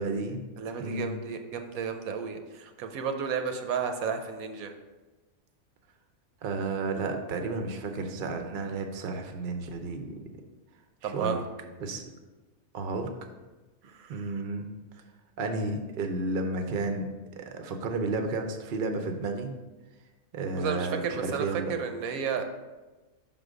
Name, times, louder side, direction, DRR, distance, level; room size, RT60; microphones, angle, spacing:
voice 1, 0.0-0.4 0.8-1.1 6.4-10.2 11.0-11.4 11.8-12.0 12.7-13.1 14.1-14.7 15.4-19.6 20.3-21.7, right 3 dB, 55° right, 5 dB, 0.7 m, -32 dB
voice 2, 0.6-4.7 11.0-11.4 13.8-14.3 20.5-22.5, right 6 dB, 85° right, 6 dB, 1.1 m, -33 dB
5.6 x 3.8 x 4.9 m, 1.2 s
omnidirectional pair, 1.5 m